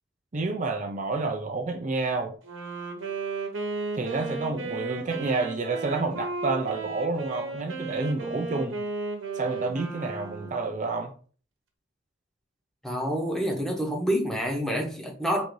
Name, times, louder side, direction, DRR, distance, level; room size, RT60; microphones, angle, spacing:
voice 1, 0.3-2.3 3.9-8.8 9.3-11.1, right 3 dB, 40° right, 0.5 m, -29 dB
Wind instrument woodwind instrument, 2.4-10.8, right 3 dB, 70° right, 1.1 m, -35 dB
voice 2, 12.8-15.4, equal, 5° left, 0.9 m, -27 dB
3.9 x 2.7 x 4.6 m
head